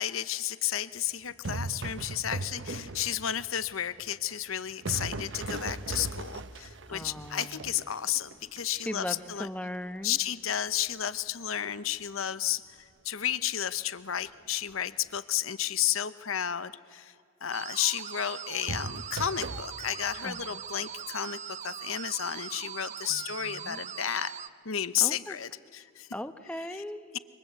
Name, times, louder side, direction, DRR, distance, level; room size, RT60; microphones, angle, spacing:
voice 1, 0.0-9.5 10.0-17.1 17.4-24.4 24.6-26.1 26.7-26.8 27.1-27.2, left 10 dB, 85° left, 15 dB, 0.9 m, -32 dB
sound 1, 1.3-3.5 4.0-9.0 10.7-11.0 18.7-19.6, right 2 dB, 60° right, 0.9 m, -38 dB
voice 2, 6.9-7.7 8.8-10.2 20.2-20.4 23.1-23.8 25.0-25.4 26.1-27.0, left 1 dB, 5° left, 9 dB, 1.0 m, -38 dB
sound 2, 17.5-24.5, right 8 dB, 35° right, 0.7 m, -41 dB
28.5 x 25.0 x 8.1 m, 2.3 s
head